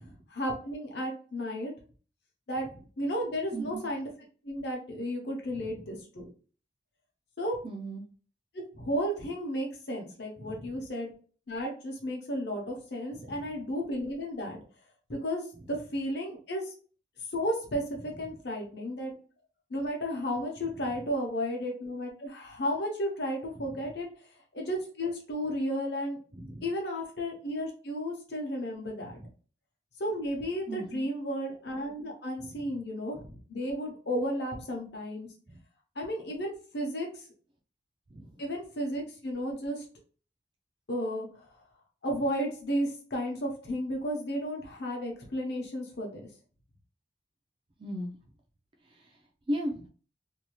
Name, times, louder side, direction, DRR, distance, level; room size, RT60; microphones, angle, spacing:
voice 1, 0.3-1.7 2.5-2.7 3.0-4.1 4.4-6.3 7.4-7.6 8.7-11.1 11.5-14.6 15.1-16.7 17.3-19.1 19.7-24.1 24.5-26.2 26.6-29.2 30.0-35.3 36.0-37.3 38.4-39.8 40.9-41.3 42.0-46.3, equal, 60° left, 1 dB, 0.8 m, -33 dB
voice 2, 3.5-3.8 5.6-5.7 7.6-8.0 10.4-10.8 13.1-13.5 23.5-23.8 26.3-26.7 29.1-29.3 30.7-31.0 32.4-32.5 35.5-35.6 38.1-38.4 47.8-48.1 48.9-49.1 49.5-49.9, right 1 dB, 25° right, 1 dB, 0.4 m, -37 dB
2.7 x 2.3 x 3.0 m, 0.40 s
head